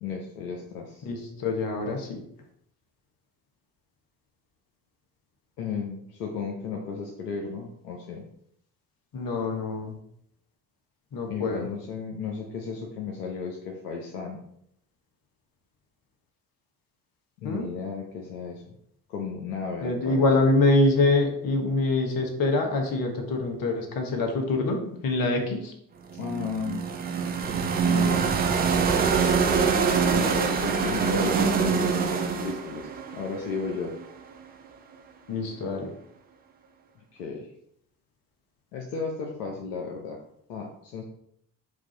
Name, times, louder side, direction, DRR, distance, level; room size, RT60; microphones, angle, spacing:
voice 1, 0.0-1.1 5.6-8.2 11.3-14.4 17.4-18.8 19.1-20.5 26.1-26.8 27.8-28.3 30.0-32.9 33.1-33.9 37.1-37.5 38.7-40.2 40.5-41.0, left 5 dB, 75° left, 1 dB, 0.7 m, -34 dB
voice 2, 1.0-2.2 9.1-9.9 11.1-11.7 17.4-17.7 19.8-25.7 35.3-35.9, left 2 dB, 45° left, 3 dB, 1.1 m, -25 dB
sound 1, 26.1-34.1, right 5 dB, 20° right, 0.4 m, -25 dB
4.7 x 2.5 x 3.8 m, 0.71 s
figure-of-eight pair, 45°, 49 cm